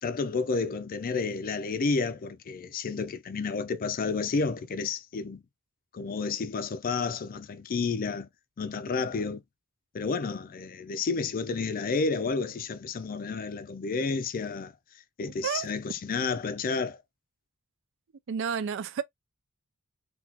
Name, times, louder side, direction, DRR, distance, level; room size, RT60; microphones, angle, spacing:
voice 1, 0.0-5.4 5.9-8.3 8.6-9.4 9.9-14.7 15.2-17.0, left 4 dB, 40° left, 0.4 m, -31 dB
voice 2, 18.3-19.0, right 7 dB, 60° right, 0.4 m, -30 dB
3.9 x 2.4 x 2.8 m
head